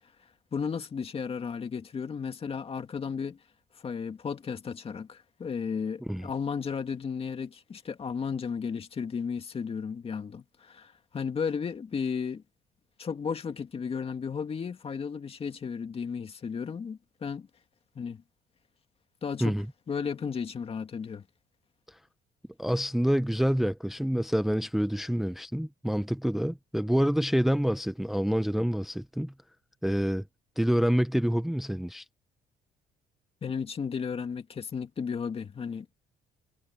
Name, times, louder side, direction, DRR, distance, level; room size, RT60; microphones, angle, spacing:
voice 1, 0.5-3.4 3.8-12.4 13.0-17.5 18.0-18.2 19.2-19.5 19.9-21.2 33.4-35.9, left 6 dB, 35° left, 2.3 m, -34 dB
voice 2, 22.6-29.3 29.8-30.2 30.6-32.0, equal, ahead, 0.6 m, -27 dB
cardioid pair, 110°, 17 cm